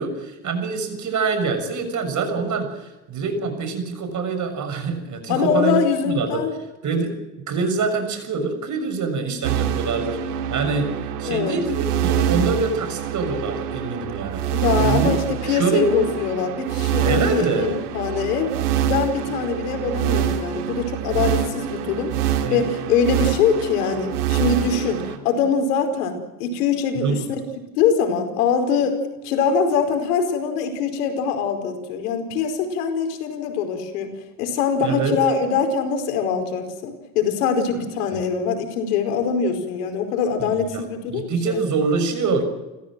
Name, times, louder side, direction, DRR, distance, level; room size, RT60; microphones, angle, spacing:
voice 1, 0.0-6.4 6.8-7.1 7.5-10.9 11.2-15.1 15.4-15.9 17.0-17.8 22.4-22.7 26.9-27.2 34.8-35.2 38.1-38.2 40.4-40.8 41.1-42.4, right 4 dB, 40° right, 8 dB, 6.7 m, -25 dB
voice 2, 5.3-6.5 11.2-11.6 14.4-18.6 18.8-22.1 22.5-27.2 27.8-34.1 34.4-41.6, left 6 dB, 80° left, 6 dB, 4.9 m, -23 dB
sound 1, 9.4-25.2, right 10 dB, 90° right, 2.9 m, -25 dB
29.5 x 15.5 x 7.6 m, 1.1 s
supercardioid pair, 100°, 45 cm